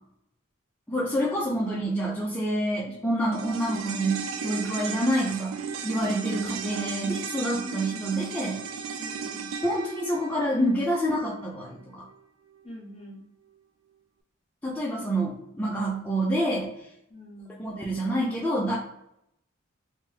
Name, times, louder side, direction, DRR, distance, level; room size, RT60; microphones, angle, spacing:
voice 1, 0.9-8.6 9.6-12.0 14.6-16.7 17.6-18.8, right 1 dB, 5° left, -6 dB, 0.4 m, -27 dB
sound 1, 3.3-11.8 12.1-12.2, right 6 dB, 65° right, 0.3 m, -36 dB
voice 2, 7.6-8.1 9.0-9.5 12.6-13.2 17.1-17.7, equal, 30° left, -2 dB, 0.8 m, -44 dB
2.9 x 2.2 x 3.2 m, 0.79 s
head